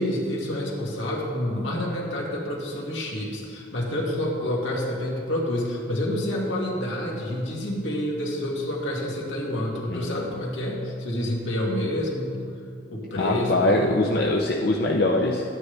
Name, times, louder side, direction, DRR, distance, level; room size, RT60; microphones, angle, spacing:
voice 1, 0.0-12.4 12.9-14.4, left 1 dB, 80° left, -2 dB, 2.0 m, -28 dB
voice 2, 13.1-15.4, left 2 dB, 55° left, -1 dB, 0.6 m, -23 dB
13.0 x 9.8 x 3.3 m, 2.3 s
head